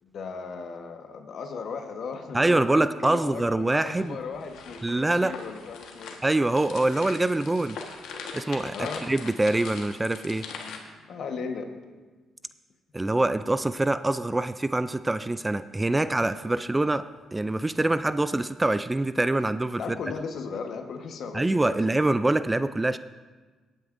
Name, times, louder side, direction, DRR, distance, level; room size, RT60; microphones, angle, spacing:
voice 1, 0.0-6.2 8.7-9.1 10.6-11.7 19.8-22.1, left 5 dB, 65° left, 5 dB, 1.2 m, -37 dB
voice 2, 2.3-4.2 4.8-5.4 6.2-7.8 8.3-8.8 9.0-10.5 12.9-19.8 21.3-23.0, right 2 dB, 15° right, 13 dB, 0.3 m, -25 dB
sound 1, 3.8-10.8, left 5 dB, 85° left, 1.3 m, -41 dB
18.0 x 9.1 x 2.6 m, 1.3 s
cardioid pair, 90°, 0 cm